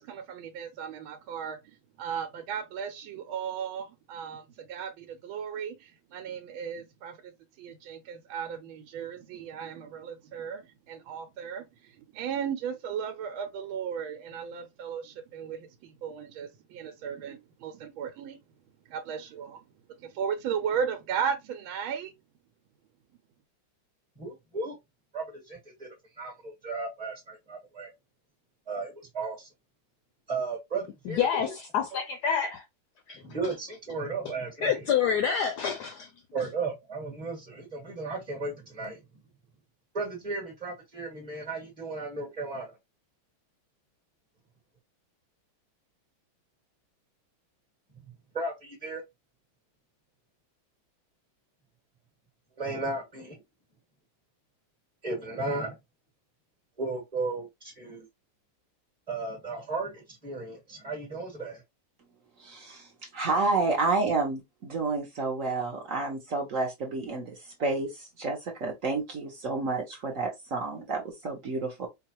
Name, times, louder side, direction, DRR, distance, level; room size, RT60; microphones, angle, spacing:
voice 1, 0.0-7.3 7.6-18.4 18.9-19.6 20.0-22.1, right 7 dB, 90° right, 1.4 m, -36 dB
voice 2, 24.2-24.8 25.1-25.9 26.2-27.9 28.7-29.5 30.3-31.5 33.2-34.8 36.3-39.0 39.9-42.8 48.3-49.0 52.6-53.4 55.0-55.8 56.8-58.1 59.1-61.6, right 3 dB, 20° right, 1.1 m, -35 dB
voice 3, 31.1-32.6 33.1-33.5 34.6-36.1, left 7 dB, 70° left, 1.0 m, -28 dB
voice 4, 62.4-71.9, right 3 dB, 55° right, 1.0 m, -30 dB
4.6 x 2.3 x 2.9 m
omnidirectional pair, 2.2 m